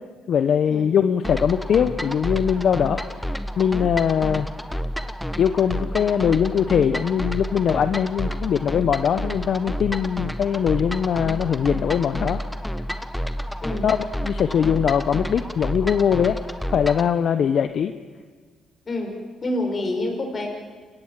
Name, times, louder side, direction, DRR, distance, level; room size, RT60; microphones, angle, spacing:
voice 1, 0.3-3.3 3.6-4.5 5.4-12.4 13.8-16.4 16.7-17.9, left 8 dB, 60° left, 10 dB, 0.9 m, -21 dB
sound 1, 1.2-17.1, equal, 5° left, 1.3 m, -30 dB
voice 2, 19.4-20.5, left 1 dB, 40° left, 3 dB, 6.0 m, -27 dB
30.0 x 17.0 x 7.5 m, 1.5 s
cardioid pair, 90°, 0 cm